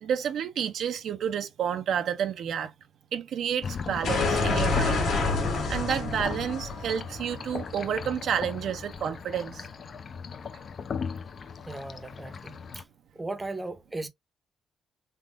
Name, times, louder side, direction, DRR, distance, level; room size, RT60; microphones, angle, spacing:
voice 1, 0.0-2.7 3.1-5.0 5.7-9.6, right 8 dB, 70° right, 0.5 m, -30 dB
sound 1, 3.6-12.8, left 6 dB, 45° left, 0.4 m, -38 dB
sound 2, 4.0-8.8, left 3 dB, 70° left, 1.4 m, -28 dB
voice 2, 11.7-12.9 13.1-14.1, right 2 dB, 15° right, 0.6 m, -37 dB
3.5 x 2.9 x 2.4 m
cardioid pair, 90°, 0 cm